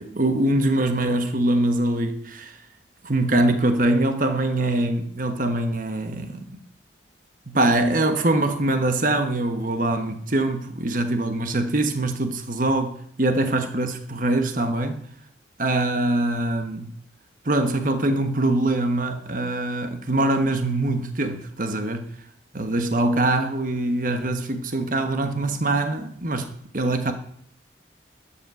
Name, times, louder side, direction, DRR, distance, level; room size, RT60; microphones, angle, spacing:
voice 1, 0.0-2.5 3.0-6.6 7.5-15.0 15.6-16.9 17.4-22.0 22.5-27.1, right 2 dB, 50° right, 1.3 m, -23 dB
12.5 x 8.8 x 7.0 m
head